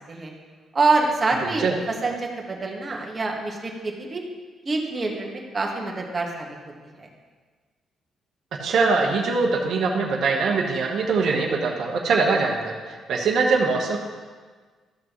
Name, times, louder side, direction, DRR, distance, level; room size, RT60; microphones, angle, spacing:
voice 1, 0.7-1.7 2.0-4.2 4.6-6.5 7.0-7.1, right 3 dB, 30° right, 0 dB, 1.6 m, -25 dB
voice 2, 1.4-1.7 8.5-14.0, right 4 dB, 65° right, 0 dB, 1.2 m, -22 dB
13.5 x 6.1 x 3.1 m, 1.5 s
cardioid pair, 90°, 0 cm